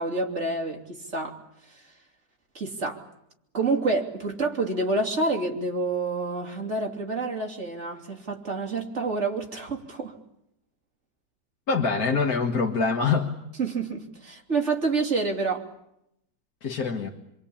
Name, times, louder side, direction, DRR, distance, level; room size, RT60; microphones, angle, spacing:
voice 1, 0.0-1.4 1.6-1.9 2.5-3.0 3.5-10.1 13.6-15.7, right 3 dB, 35° right, 3.2 m, -28 dB
voice 2, 11.7-13.3 16.6-17.1, left 4 dB, 55° left, 2.1 m, -24 dB
26.5 x 23.0 x 8.7 m
omnidirectional pair, 2.0 m